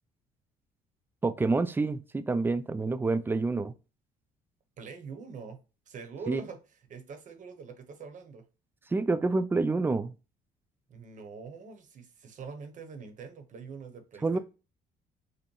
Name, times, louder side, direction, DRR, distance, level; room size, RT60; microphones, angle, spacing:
voice 1, 1.2-3.7 6.3-6.4 8.9-10.1 14.2-14.4, right 3 dB, 10° right, 0.3 m, -27 dB
voice 2, 4.8-5.6 5.9-6.6 6.9-8.4 10.9-14.4, right 5 dB, 50° right, 0.9 m, -44 dB
5.2 x 2.1 x 3.1 m
cardioid pair, 110°, 17 cm